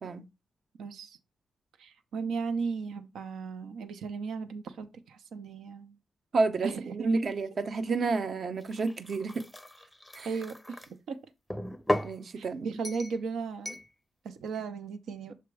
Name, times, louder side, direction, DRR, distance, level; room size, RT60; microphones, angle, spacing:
voice 1, 0.8-1.2 1.8-6.0 6.6-7.1 10.2-11.2 12.4-13.8 14.2-15.3, right 5 dB, 90° right, 0.7 m, -36 dB
voice 2, 6.3-9.4 10.1-10.3 12.0-12.7, right 3 dB, 55° right, 0.8 m, -30 dB
sound 1, 8.6-10.9 11.5-12.2 12.8-13.2 13.6-13.9, left 1 dB, 5° left, 0.5 m, -35 dB
7.1 x 2.9 x 4.7 m
cardioid pair, 80°, 0 cm